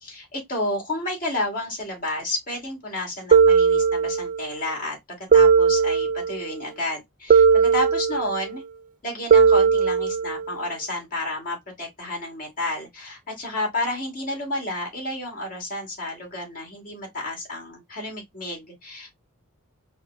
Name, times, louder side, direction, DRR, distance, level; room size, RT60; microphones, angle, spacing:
voice 1, 0.0-5.0 5.3-8.6 9.0-19.1, left 1 dB, 40° left, 1.9 m, -31 dB
sound 1, 3.3-4.5 5.3-6.5 7.3-8.5 9.3-10.5, right 5 dB, 35° right, 0.3 m, -18 dB
4.3 x 2.1 x 3.6 m
head